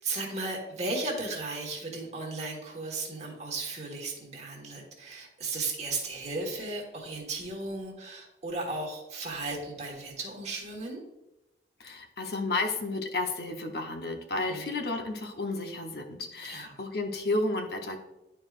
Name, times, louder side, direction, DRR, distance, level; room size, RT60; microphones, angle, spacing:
voice 1, 0.0-11.0 14.3-14.7 16.4-16.8, right 3 dB, 35° right, 0 dB, 1.4 m, -35 dB
voice 2, 11.8-18.0, left 2 dB, 60° left, 4 dB, 0.8 m, -32 dB
10.5 x 4.6 x 2.4 m, 0.96 s
head